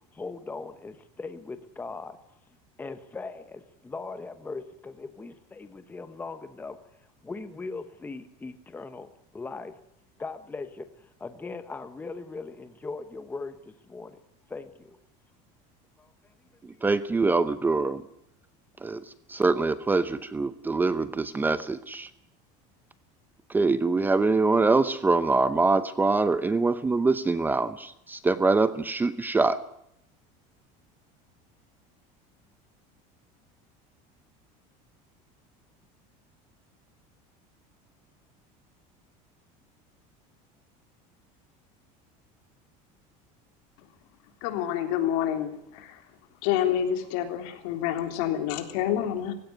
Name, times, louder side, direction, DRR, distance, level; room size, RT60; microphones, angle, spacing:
voice 1, 0.1-2.2 2.8-6.8 7.2-9.7 10.2-14.2 14.5-15.0 16.0-16.1 16.7-16.8, left 3 dB, 10° left, 9 dB, 1.1 m, -39 dB
voice 2, 16.8-18.0 18.8-19.0 19.3-22.1 23.5-29.6, right 3 dB, 10° right, 13 dB, 0.8 m, -24 dB
voice 3, 44.4-46.0 46.4-49.3, left 10 dB, 75° left, 6 dB, 3.5 m, -28 dB
18.5 x 16.5 x 9.5 m, 0.75 s
cardioid pair, 165°, 17 cm